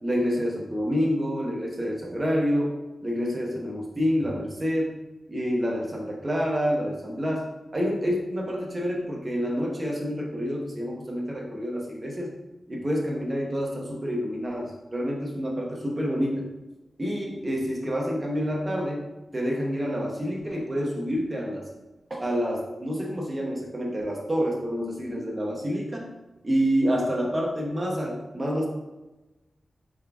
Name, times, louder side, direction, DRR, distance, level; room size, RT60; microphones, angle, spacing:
voice 1, 0.0-2.7 3.0-5.0 5.3-12.3 12.7-16.5 17.0-19.1 19.3-21.7 22.1-26.1 26.4-28.7, equal, 20° right, -2 dB, 0.8 m, -28 dB
4.4 x 3.6 x 2.3 m, 1.1 s
wide cardioid pair, 165°, 0 cm